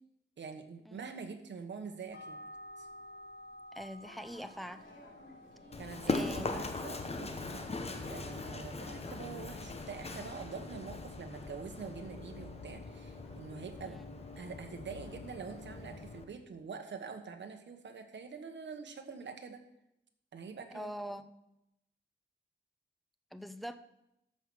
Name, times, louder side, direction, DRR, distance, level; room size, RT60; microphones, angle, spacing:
voice 1, 0.4-2.4 2.8-2.9 5.8-14.0 14.4-19.6 20.3-20.9, right 5 dB, 70° right, 5 dB, 1.3 m, -45 dB
sound 1, 2.1-14.5, equal, 55° left, 1.3 m, -55 dB
voice 2, 3.7-4.9 6.1-6.5 13.8-14.0 20.7-21.3 23.3-23.8, equal, ahead, 10 dB, 0.5 m, -43 dB
sound 2, 4.0-15.9, left 1 dB, 90° left, 4.2 m, -58 dB
Run, 5.7-16.2, left 3 dB, 30° left, 1.0 m, -40 dB
14.0 x 5.6 x 6.3 m, 0.86 s
wide cardioid pair, 165°, 20 cm